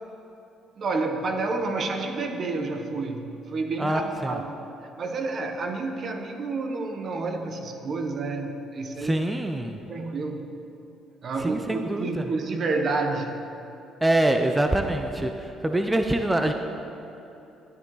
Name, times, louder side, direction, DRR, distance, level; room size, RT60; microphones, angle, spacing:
voice 1, 0.8-9.3 9.9-10.5 11.2-13.3, right 3 dB, 55° right, 5 dB, 1.1 m, -29 dB
voice 2, 3.8-4.4 9.0-9.8 11.4-12.3 14.0-16.5, right 1 dB, 15° right, 5 dB, 0.7 m, -25 dB
12.0 x 10.0 x 4.0 m, 3.0 s
supercardioid pair, 70°, 0 cm